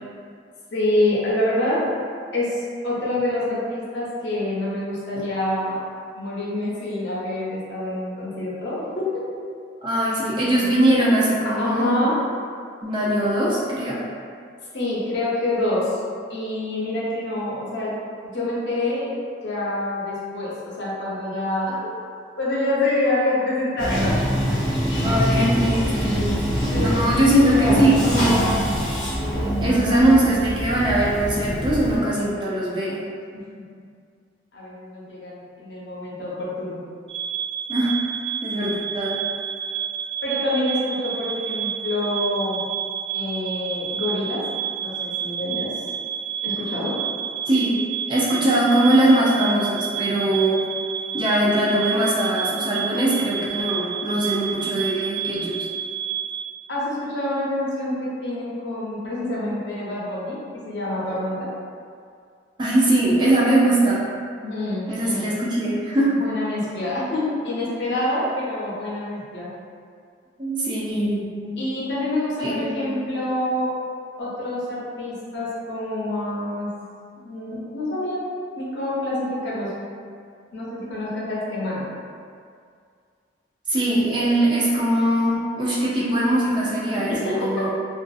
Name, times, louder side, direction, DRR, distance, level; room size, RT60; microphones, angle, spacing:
voice 1, 0.7-1.9 2.3-5.8 6.1-9.2 11.4-12.2 14.7-15.9 16.3-17.9 18.3-19.1 19.4-21.8 22.4-24.2 26.7-28.0 29.2-30.0 33.3-33.6 34.5-36.8 40.2-42.6 43.1-44.4 44.8-45.9 46.4-47.0 56.7-61.5 64.4-65.3 66.1-69.5 71.6-73.7 74.2-76.7 77.2-78.2 78.5-79.7 80.5-81.9 87.1-87.5, left 1 dB, 65° left, -7 dB, 0.7 m, -26 dB
voice 2, 9.8-12.1 12.8-14.0 25.0-28.6 29.6-33.0 37.7-38.0 38.4-39.2 47.5-47.8 48.1-50.6 51.1-55.7 62.6-64.1 64.9-66.2 70.4-71.6 72.4-73.0 83.7-87.7, right 1 dB, 25° right, -6 dB, 0.4 m, -21 dB
Bathtub (filling or washing), 23.8-32.0, equal, 20° left, 0.7 m, -24 dB
sound 1, 37.1-56.4, right 9 dB, 80° right, 0.5 m, -30 dB
2.6 x 2.4 x 2.3 m, 2.2 s
head